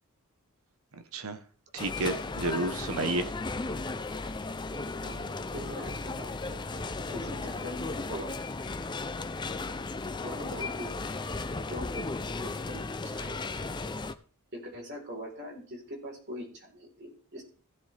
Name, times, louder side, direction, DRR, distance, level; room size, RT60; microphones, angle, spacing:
voice 1, 0.9-1.4 1.7-3.3, right 2 dB, 70° right, 9 dB, 1.1 m, -31 dB
sound 1, 1.8-14.1, left 3 dB, 20° left, 0.5 m, -35 dB
voice 2, 5.0-6.6 7.1-8.6 10.2-11.3 11.7-12.1 12.4-13.8 14.5-17.4, equal, 50° right, 0 dB, 3.9 m, -42 dB
15.5 x 7.6 x 3.4 m, 0.42 s
head